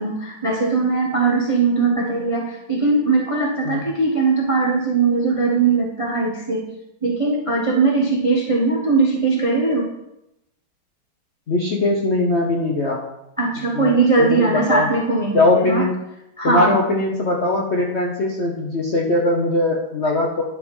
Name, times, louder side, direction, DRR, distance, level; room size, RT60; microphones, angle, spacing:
voice 1, 0.0-6.6 7.0-9.9 13.4-15.8 16.4-16.7, right 3 dB, 30° right, 0 dB, 0.6 m, -20 dB
voice 2, 11.5-13.0 13.7-14.9 15.3-15.9 16.4-20.4, left 2 dB, 50° left, 0 dB, 0.8 m, -20 dB
10.5 x 4.8 x 5.3 m, 0.87 s
omnidirectional pair, 2.3 m